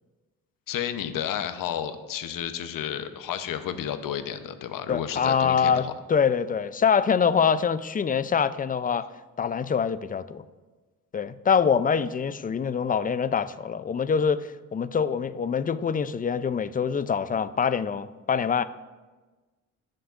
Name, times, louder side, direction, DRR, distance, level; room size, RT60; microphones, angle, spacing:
voice 1, 0.7-5.9, left 9 dB, 65° left, 9 dB, 0.8 m, -32 dB
voice 2, 4.9-9.1 9.4-10.5 11.1-18.6, left 6 dB, 25° left, 14 dB, 0.4 m, -25 dB
16.0 x 6.5 x 2.5 m, 1.3 s
cardioid pair, 70°, 35 cm